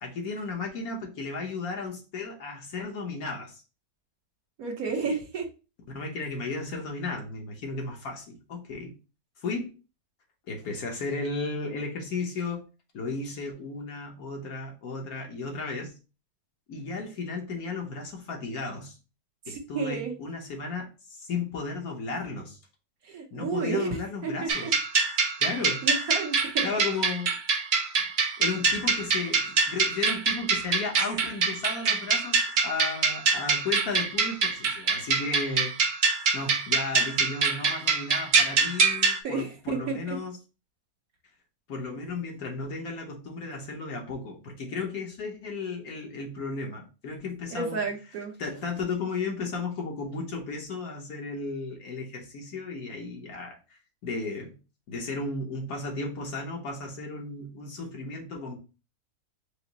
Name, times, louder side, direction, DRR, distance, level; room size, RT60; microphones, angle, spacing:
voice 1, 0.0-3.6 5.0-5.2 5.9-8.9 9.4-9.7 10.5-12.6 12.9-15.9 16.7-19.0 19.5-22.6 23.3-24.7 25.4-25.9 26.6-27.4 28.4-35.8 36.3-40.4 41.7-47.8 48.4-53.6 54.0-54.6 54.9-58.6, left 3 dB, 65° left, 1 dB, 1.5 m, -34 dB
voice 2, 4.6-5.4 19.5-20.2 23.0-23.9 24.2-24.7 25.8-26.7 39.2-40.2 47.5-48.3, right 4 dB, 65° right, 2 dB, 1.3 m, -31 dB
sound 1, 24.5-39.2, right 4 dB, 90° right, 0.4 m, -25 dB
4.9 x 2.1 x 4.0 m, 0.32 s
omnidirectional pair, 1.7 m